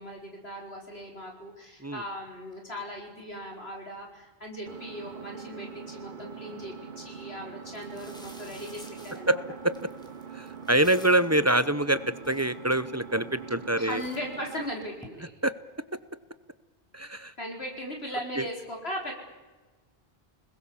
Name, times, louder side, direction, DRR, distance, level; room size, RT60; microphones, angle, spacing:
voice 1, 0.0-9.4 13.7-15.3 17.4-19.1, equal, 80° left, 1 dB, 5.0 m, -38 dB
Engine, 4.7-14.7, right 6 dB, 50° right, 1.3 m, -43 dB
sound 1, 7.1-7.2 7.6-11.4 11.9-12.0 12.2-12.9 13.4-13.6 13.9-15.1, equal, 5° left, 3.2 m, -51 dB
voice 2, 10.3-12.0 12.3-14.0 15.4-15.5 16.9-17.3 18.4-18.5, right 1 dB, 15° right, 15 dB, 0.7 m, -25 dB
29.5 x 21.0 x 7.2 m, 1.2 s
omnidirectional pair, 1.0 m